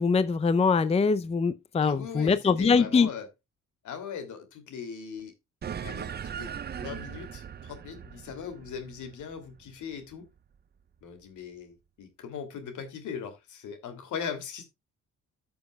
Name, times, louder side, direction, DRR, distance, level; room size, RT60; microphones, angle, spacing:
voice 1, 0.0-3.1, left 5 dB, 20° left, 0.5 m, -23 dB
voice 2, 1.8-3.3 3.8-5.3 5.8-6.1 6.4-10.2 11.0-14.6, left 7 dB, 75° left, 2.8 m, -39 dB
sound 1, 5.6-10.4, right 8 dB, 35° right, 0.5 m, -39 dB
14.0 x 6.9 x 2.3 m
cardioid pair, 90°, 30 cm